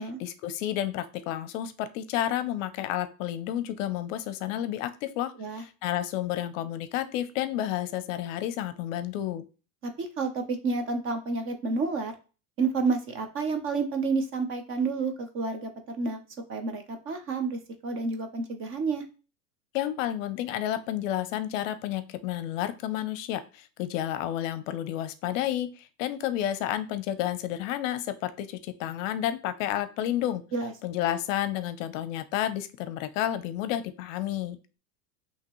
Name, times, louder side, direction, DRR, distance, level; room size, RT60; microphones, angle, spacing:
voice 1, 0.0-9.5 19.7-30.4 30.8-34.6, left 12 dB, 60° left, 12 dB, 0.6 m, -31 dB
voice 2, 9.8-12.1 12.6-16.2 16.5-19.1 30.5-30.7, right 4 dB, 30° right, 6 dB, 0.7 m, -30 dB
5.7 x 3.0 x 3.0 m, 0.33 s
supercardioid pair, 140°, 45 cm